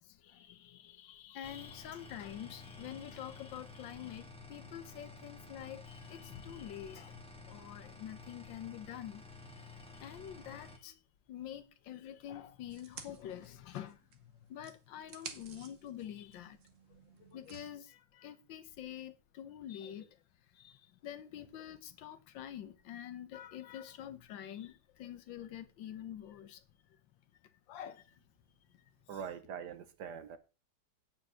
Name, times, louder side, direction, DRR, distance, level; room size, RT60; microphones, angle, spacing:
voice 1, 0.0-7.2 7.5-11.0 11.3-16.6 17.2-20.2 20.5-26.6 27.4-28.2 28.7-29.2, left 10 dB, 90° left, 1.6 m, -47 dB
sound 1, 1.4-10.8, left 3 dB, 5° left, 1.5 m, -52 dB
sound 2, 12.7-14.2 14.6-17.7, right 6 dB, 45° right, 1.4 m, -52 dB
voice 2, 29.1-30.4, right 7 dB, 65° right, 1.6 m, -43 dB
9.2 x 5.8 x 6.2 m
omnidirectional pair, 2.0 m